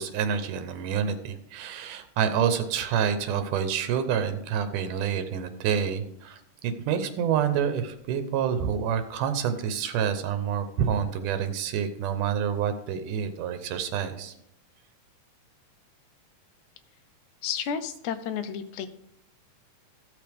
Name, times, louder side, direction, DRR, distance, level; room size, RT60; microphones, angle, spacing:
voice 1, 0.0-14.3, right 8 dB, 85° right, 9 dB, 2.4 m, -28 dB
voice 2, 17.4-18.9, left 7 dB, 80° left, 9 dB, 2.1 m, -31 dB
14.5 x 6.6 x 3.4 m, 0.76 s
omnidirectional pair, 3.5 m